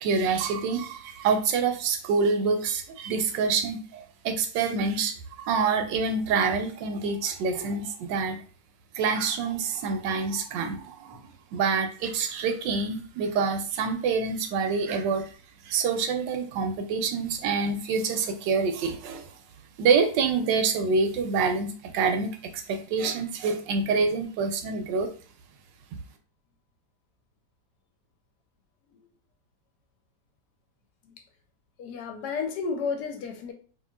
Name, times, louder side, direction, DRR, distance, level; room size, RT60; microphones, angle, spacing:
voice 1, 0.0-8.4 8.9-15.3 15.6-19.3 19.8-25.1, right 5 dB, 90° right, 1.3 m, -26 dB
voice 2, 31.8-33.5, left 5 dB, 75° left, 1.2 m, -32 dB
3.0 x 2.8 x 2.3 m
omnidirectional pair, 1.9 m